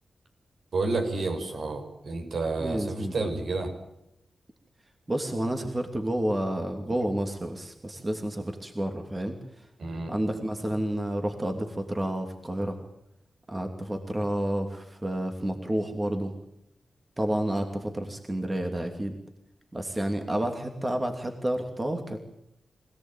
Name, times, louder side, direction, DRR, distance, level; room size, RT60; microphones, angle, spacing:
voice 1, 0.7-3.7 9.8-10.1, right 3 dB, 65° right, 5 dB, 6.4 m, -30 dB
voice 2, 2.6-3.1 5.1-9.7 10.1-12.8 13.5-16.3 17.2-19.2 19.7-22.2, right 1 dB, 20° right, 4 dB, 2.8 m, -30 dB
26.0 x 17.5 x 9.2 m, 0.83 s
wide cardioid pair, 110°, 0 cm